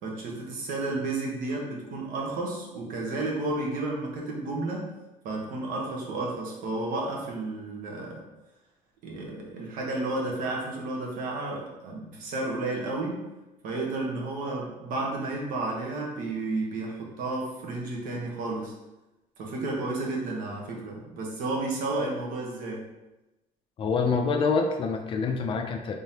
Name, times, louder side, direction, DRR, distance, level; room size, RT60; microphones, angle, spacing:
voice 1, 0.0-4.9 5.2-8.2 9.0-13.3 13.6-18.7 19.4-22.8, right 2 dB, 75° right, -1 dB, 1.0 m, -32 dB
voice 2, 23.8-26.0, left 4 dB, 40° left, 5 dB, 0.4 m, -26 dB
3.6 x 3.5 x 2.8 m, 1.0 s
cardioid pair, 170°, 14 cm